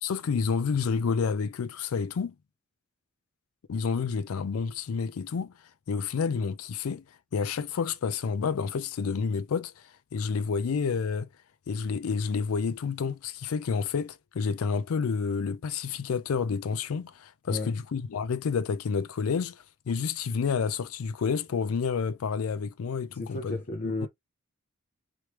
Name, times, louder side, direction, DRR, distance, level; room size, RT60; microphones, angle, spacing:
voice 1, 0.0-2.3 3.7-5.5 5.9-7.0 7.3-11.3 11.7-23.6 23.8-24.1, left 5 dB, 85° left, 0.4 m, -29 dB
voice 2, 23.1-24.1, left 2 dB, 40° left, 0.6 m, -33 dB
3.1 x 3.1 x 2.9 m
head